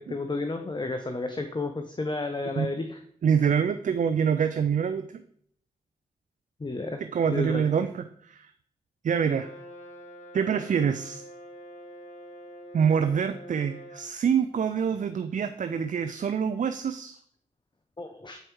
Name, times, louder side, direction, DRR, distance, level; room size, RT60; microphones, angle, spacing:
voice 1, 0.0-3.0 6.6-7.0 7.3-7.7 18.0-18.4, left 3 dB, 30° left, 6 dB, 0.8 m, -32 dB
voice 2, 3.2-5.2 7.1-8.5 9.0-9.5 10.3-11.2 12.7-17.2, right 7 dB, 55° right, 10 dB, 0.5 m, -26 dB
Brass instrument, 9.2-14.1, equal, 50° left, 1.5 m, -45 dB
7.7 x 4.5 x 4.6 m, 0.64 s
supercardioid pair, 40°, 16 cm